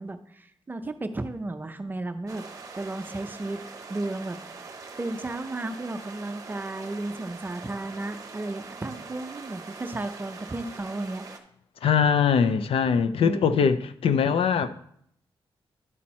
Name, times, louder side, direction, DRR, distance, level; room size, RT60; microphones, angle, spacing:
voice 1, 0.0-2.4 2.8-3.6 3.9-4.6 5.0-11.2 13.2-13.7, right 2 dB, 20° right, 0.5 m, -34 dB
sound 1, 2.3-11.4, right 4 dB, 35° right, 0.8 m, -43 dB
voice 2, 11.8-14.7, left 6 dB, 75° left, 0.5 m, -22 dB
11.0 x 4.4 x 4.2 m
wide cardioid pair, 160°, 10 cm